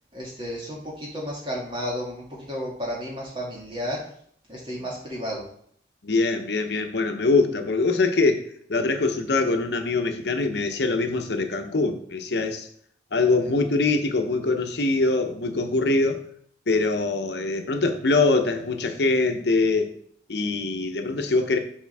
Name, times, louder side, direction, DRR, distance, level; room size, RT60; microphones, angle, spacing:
voice 1, 0.1-4.0 4.5-5.4, equal, 25° right, -4 dB, 2.3 m, -32 dB
voice 2, 6.0-8.4 8.7-12.7 13.1-16.2 16.7-19.9 20.3-21.6, left 3 dB, 75° left, 6 dB, 0.8 m, -23 dB
7.4 x 5.1 x 3.5 m, 0.63 s
head